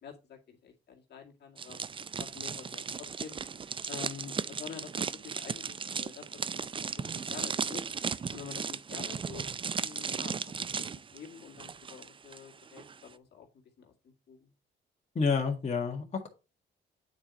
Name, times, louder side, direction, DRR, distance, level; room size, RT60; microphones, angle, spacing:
voice 1, 0.0-1.8 2.2-3.4 3.9-7.8 8.3-14.5, left 6 dB, 55° left, 2.1 m, -48 dB
sound 1, 1.6-12.4 12.7-12.9, right 6 dB, 25° right, 0.4 m, -36 dB
voice 2, 15.2-16.3, left 5 dB, 35° left, 1.8 m, -29 dB
8.7 x 4.7 x 4.0 m
cardioid pair, 90°, 20 cm